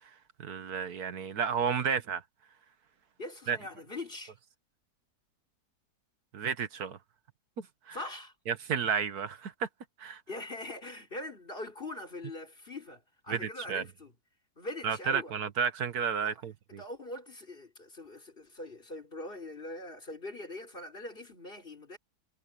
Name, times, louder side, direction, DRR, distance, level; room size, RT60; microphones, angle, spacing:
voice 1, 0.4-2.2 3.5-3.6 6.3-7.0 7.6-8.0 8.5-9.7 10.0-10.2 13.3-13.8 14.8-16.8, right 7 dB, 65° right, 1.7 m, -32 dB
voice 2, 3.2-4.4 7.9-8.3 10.3-14.1 14.6-15.3 16.2-16.4 16.8-22.0, left 2 dB, 30° left, 4.3 m, -42 dB
omnidirectional pair, 1.8 m